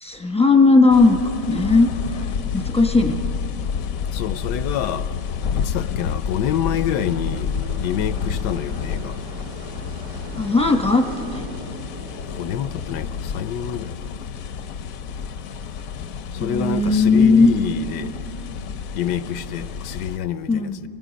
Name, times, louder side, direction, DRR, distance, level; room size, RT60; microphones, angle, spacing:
voice 1, 0.0-1.2 1.5-1.9 2.2-2.3 2.5-3.2 10.4-11.4 16.4-17.5 20.5-20.8, left 3 dB, 5° left, 0.6 m, -16 dB
sound 1, 0.9-20.2, left 7 dB, 65° left, 1.0 m, -29 dB
voice 2, 4.1-5.1 5.5-7.5 7.8-9.2 12.3-14.0 16.3-18.1 18.9-20.7, left 9 dB, 80° left, 1.3 m, -27 dB
sound 2, 5.6-15.5, right 1 dB, 65° right, 2.1 m, -43 dB
29.5 x 19.5 x 5.2 m
omnidirectional pair, 1.8 m